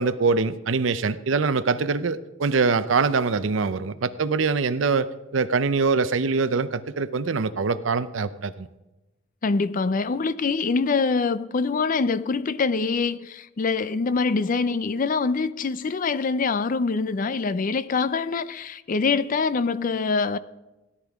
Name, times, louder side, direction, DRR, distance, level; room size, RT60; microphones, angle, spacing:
voice 1, 0.0-5.1 5.3-8.7, right 4 dB, 70° right, 0.6 m, -23 dB
voice 2, 9.4-20.4, left 4 dB, 45° left, 0.4 m, -24 dB
17.0 x 11.0 x 3.5 m
head